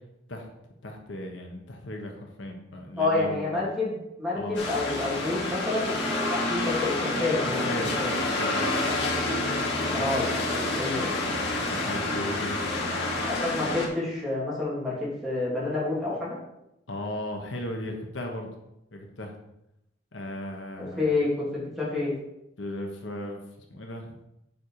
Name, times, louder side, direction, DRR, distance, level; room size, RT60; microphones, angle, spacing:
voice 1, 0.8-3.5 4.3-4.6 7.4-7.9 8.3-8.7 9.8-10.1 10.9-13.0 16.9-18.6 18.9-19.3 20.1-21.1 22.6-23.4 23.7-24.2, left 1 dB, 85° left, 2 dB, 1.3 m, -37 dB
voice 2, 3.0-7.6 8.0-8.1 9.9-11.1 13.2-16.4 21.0-22.1, left 2 dB, ahead, -7 dB, 2.9 m, -29 dB
sound 1, 4.5-13.9, left 2 dB, 65° left, 2.3 m, -28 dB
7.9 x 5.4 x 4.7 m, 0.87 s
head